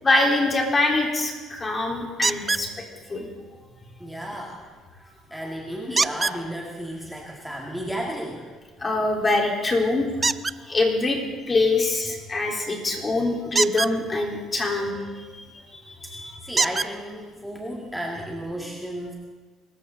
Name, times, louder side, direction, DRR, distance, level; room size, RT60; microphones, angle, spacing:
voice 1, 0.0-2.7 3.1-3.3 8.8-10.4 10.6-11.2 11.5-16.4, left 2 dB, 25° left, 0 dB, 4.0 m, -24 dB
sound 1, 2.2-2.7 6.0-6.4 10.2-10.6 13.5-13.9 15.6-15.7 16.6-16.9 17.9-18.0 18.5-18.6, right 4 dB, 25° right, 0.4 m, -23 dB
voice 2, 4.0-8.5 16.0-16.1 16.4-19.1, equal, ahead, -1 dB, 2.2 m, -34 dB
24.0 x 14.5 x 4.0 m, 1.4 s
cardioid pair, 95°, 0 cm